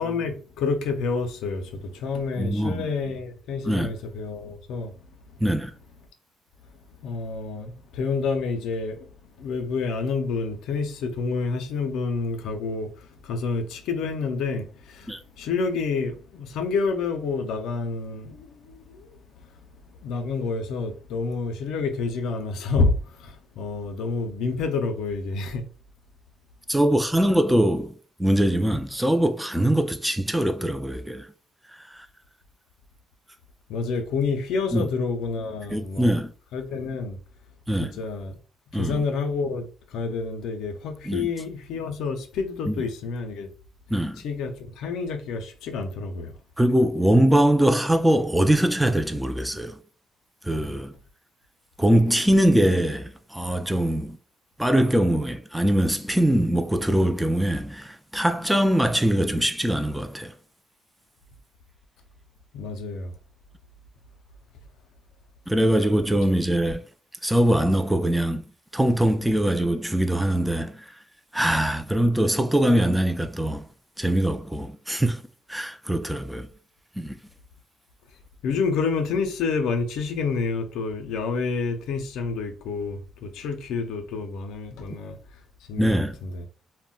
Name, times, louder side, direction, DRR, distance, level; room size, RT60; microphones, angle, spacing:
voice 1, 0.0-4.9 7.0-9.1 9.4-19.6 20.0-25.7 33.7-36.1 36.5-37.2 37.8-38.4 38.7-43.5 44.2-46.4 62.5-63.1 78.4-85.2 85.7-86.5, left 4 dB, 85° left, 0.4 m, -29 dB
voice 2, 2.4-2.9 3.7-3.9 5.4-5.7 15.1-15.2 26.7-27.9 28.2-31.3 31.9-32.1 34.7-34.9 35.7-36.3 37.7-37.9 38.7-39.0 41.1-41.3 42.7-42.8 43.9-44.2 46.6-49.8 50.4-50.9 51.8-54.2 54.6-60.3 65.5-66.8 67.2-68.5 68.7-70.9 71.3-73.7 74.0-75.2 75.5-76.5 77.0-77.2 85.8-86.2, right 1 dB, 5° right, 0.3 m, -22 dB
2.1 x 2.1 x 3.7 m
cardioid pair, 90°, 0 cm